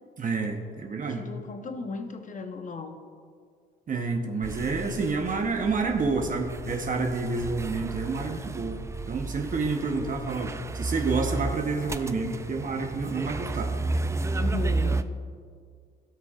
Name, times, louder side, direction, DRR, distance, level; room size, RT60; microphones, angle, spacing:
voice 1, 0.2-1.2 3.9-8.8 9.1-13.7, right 4 dB, 40° right, 3 dB, 0.9 m, -29 dB
voice 2, 1.1-3.0 14.4-15.1, left 4 dB, 40° left, 6 dB, 0.9 m, -36 dB
sound 1, 4.4-15.0, right 3 dB, 15° right, 0.3 m, -32 dB
17.5 x 6.2 x 2.4 m, 2.1 s
cardioid pair, 90°, 20 cm